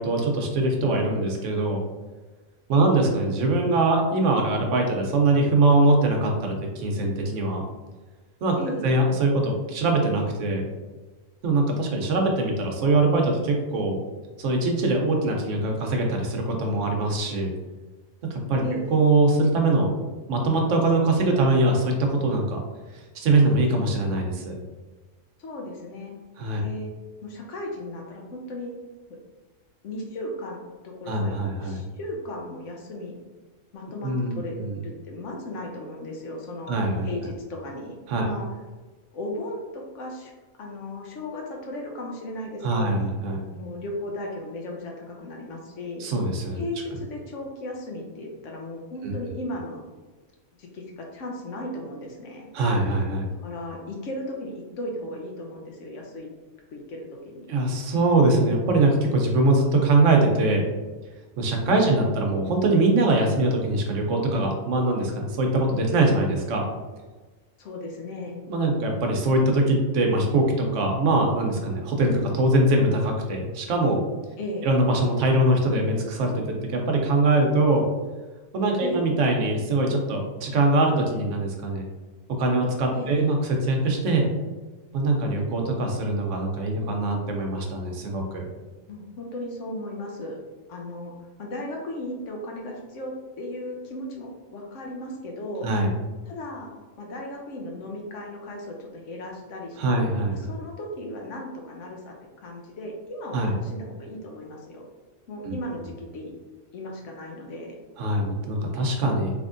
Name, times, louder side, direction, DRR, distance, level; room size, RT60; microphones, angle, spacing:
voice 1, 0.0-1.8 2.7-7.6 8.4-10.7 11.4-14.0 14.4-17.5 18.3-18.6 18.9-19.9 20.3-22.6 23.1-24.6 26.4-26.6 31.1-31.8 34.0-34.8 36.7-37.1 38.1-38.3 42.6-43.4 46.0-46.6 49.0-49.1 52.5-53.3 57.5-60.6 61.4-66.6 68.5-74.0 74.6-76.4 76.7-77.8 78.5-81.8 82.3-84.3 84.9-88.5 95.6-95.9 99.8-100.3 103.3-103.5 105.4-105.5 108.0-109.3, right 2 dB, 70° right, 2 dB, 1.0 m, -22 dB
voice 2, 8.6-8.9 18.6-18.9 25.4-26.1 26.6-26.9 27.2-28.7 29.8-33.2 33.7-34.6 34.8-36.8 37.0-38.5 39.1-40.3 40.6-42.9 43.5-46.0 46.5-49.8 50.6-52.5 53.4-56.3 56.7-57.5 61.7-61.9 67.6-68.4 74.4-74.7 78.8-79.0 82.9-83.1 88.9-90.4 90.7-91.1 91.4-95.7 96.3-100.0 100.5-104.9 105.3-106.3 106.7-107.8, left 1 dB, 70° left, 0 dB, 0.9 m, -36 dB
3.4 x 3.0 x 2.5 m, 1.3 s
omnidirectional pair, 1.3 m